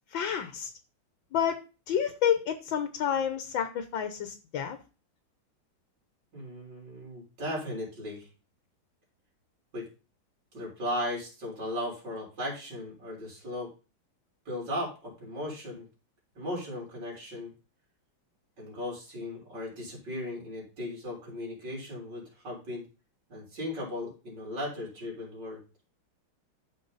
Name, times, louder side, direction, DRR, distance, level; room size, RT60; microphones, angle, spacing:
voice 1, 0.1-0.7 1.3-1.6 1.9-4.8, left 8 dB, 65° left, 9 dB, 1.7 m, -29 dB
voice 2, 6.3-8.3 9.7-9.8 10.5-13.7 14.4-15.8 16.3-17.5 18.6-22.8 23.3-25.6, left 1 dB, 55° right, -3 dB, 4.9 m, -37 dB
13.5 x 5.0 x 4.0 m, 0.32 s
omnidirectional pair, 2.3 m